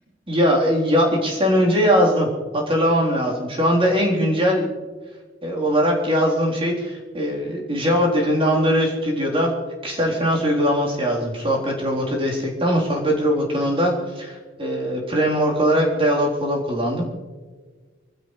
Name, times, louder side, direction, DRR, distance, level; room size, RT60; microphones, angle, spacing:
voice 1, 0.3-2.3 2.5-4.7 5.4-9.5 9.8-17.0, equal, 30° right, -3 dB, 3.9 m, -20 dB
25.0 x 15.5 x 3.3 m, 1.4 s
head